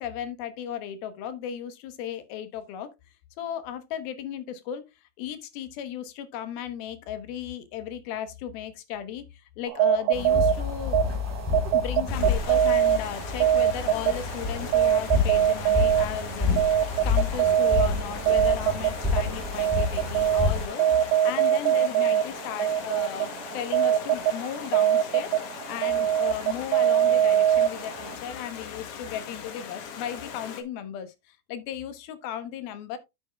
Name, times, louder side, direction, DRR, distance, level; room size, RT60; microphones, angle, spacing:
voice 1, 0.0-2.9 3.4-4.8 5.2-11.0 11.7-16.5 17.0-33.0, left 9 dB, 80° left, 3.0 m, -36 dB
sound 1, 9.7-28.2, right 10 dB, 85° right, 2.6 m, -24 dB
sound 2, 10.1-20.6, left 4 dB, 5° left, 3.3 m, -29 dB
Stream, 12.1-30.6, left 7 dB, 60° left, 1.5 m, -40 dB
9.3 x 8.9 x 2.3 m
omnidirectional pair, 4.3 m